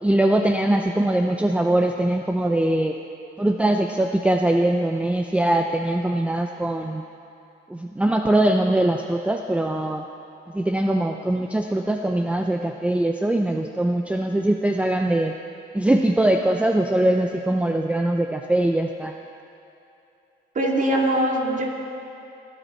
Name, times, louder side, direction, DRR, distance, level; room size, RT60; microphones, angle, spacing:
voice 1, 0.0-3.0 3.4-7.0 7.7-10.1 10.5-15.3 15.7-19.2, right 1 dB, 5° right, 4 dB, 0.5 m, -22 dB
voice 2, 20.5-21.7, right 1 dB, 40° right, -1 dB, 2.4 m, -22 dB
22.0 x 8.1 x 4.4 m, 2.8 s
cardioid pair, 90°, 20 cm